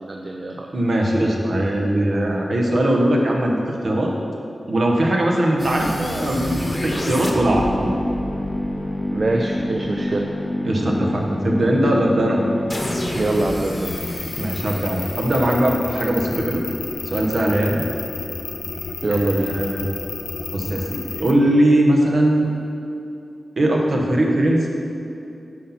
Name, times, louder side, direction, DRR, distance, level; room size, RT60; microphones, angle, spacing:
voice 1, 0.0-0.7 9.1-10.2 13.1-14.0 19.0-19.6, right 2 dB, 45° right, 1 dB, 0.5 m, -23 dB
voice 2, 0.7-4.1 4.7-7.9 10.6-12.4 14.4-16.6 17.0-17.8 19.1-20.1 20.5-22.5 23.6-24.7, right 1 dB, 60° right, 0 dB, 1.1 m, -20 dB
sound 1, 5.6-16.5, left 1 dB, 30° left, 1.0 m, -27 dB
sound 2, 13.8-21.3, left 4 dB, 80° left, 0.4 m, -31 dB
8.4 x 4.3 x 5.7 m, 2.7 s
wide cardioid pair, 80°, 0 cm